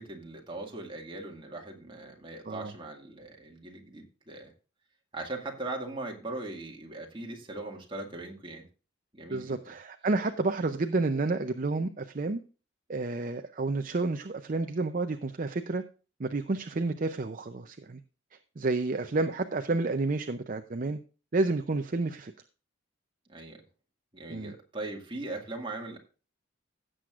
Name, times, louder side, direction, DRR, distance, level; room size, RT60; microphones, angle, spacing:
voice 1, 0.0-4.5 5.1-8.7 9.1-9.6 23.3-23.6 24.1-26.0, right 2 dB, 25° right, 1 dB, 1.9 m, -40 dB
voice 2, 9.3-12.4 12.9-15.8 16.2-18.0 18.6-21.0 21.3-22.3 24.3-24.5, right 3 dB, 40° right, 8 dB, 0.5 m, -30 dB
16.5 x 7.7 x 2.5 m, 0.35 s
head